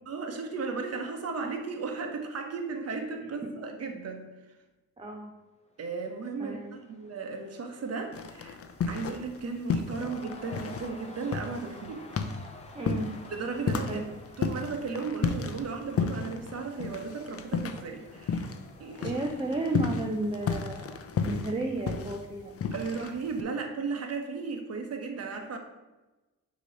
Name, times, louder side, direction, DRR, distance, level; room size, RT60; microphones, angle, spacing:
voice 1, 0.1-4.3 5.8-8.6 8.8-12.1 13.3-14.1 14.4-18.5 18.8-19.2 22.7-25.6, right 4 dB, 50° right, 4 dB, 1.0 m, -35 dB
voice 2, 5.0-5.3 6.4-6.7 12.7-13.1 13.9-14.1 19.0-22.5, right 2 dB, 15° right, 2 dB, 0.6 m, -33 dB
Cheering / Crowd, 5.7-22.5, left 3 dB, 20° left, 0.9 m, -52 dB
sound 1, 8.1-9.4 9.7-18.7 18.9-23.4, left 5 dB, 45° left, 0.6 m, -32 dB
6.2 x 3.0 x 5.3 m, 1.1 s
cardioid pair, 100°, 32 cm